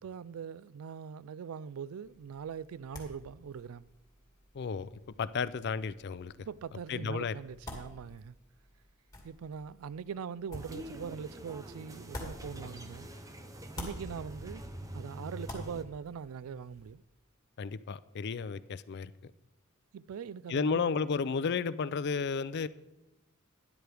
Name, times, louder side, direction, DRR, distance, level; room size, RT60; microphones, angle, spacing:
voice 1, 0.0-3.9 6.4-8.3 9.2-13.1 13.8-14.6 14.9-17.0 19.9-21.1, right 7 dB, 90° right, 0.4 m, -42 dB
sound 1, 2.0-13.2 13.5-16.9, left 1 dB, 15° left, 2.2 m, -50 dB
voice 2, 4.5-4.9 5.2-6.5 6.9-7.3 17.6-19.1 20.5-22.7, left 5 dB, 50° left, 0.4 m, -32 dB
sound 2, 10.5-15.8, right 1 dB, 15° right, 0.7 m, -45 dB
12.5 x 11.0 x 3.4 m
head